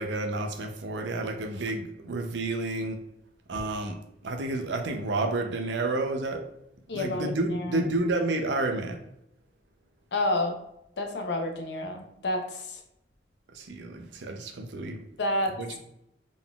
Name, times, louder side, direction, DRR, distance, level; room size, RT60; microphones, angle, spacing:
voice 1, 0.0-3.0 3.5-6.4 6.9-9.0 13.5-15.1 15.6-15.8, right 2 dB, 90° right, 5 dB, 0.6 m, -30 dB
voice 2, 6.9-7.9 10.1-10.6 11.0-12.8 15.2-15.6, left 1 dB, 75° left, 4 dB, 0.6 m, -29 dB
3.8 x 3.8 x 2.3 m, 0.81 s
head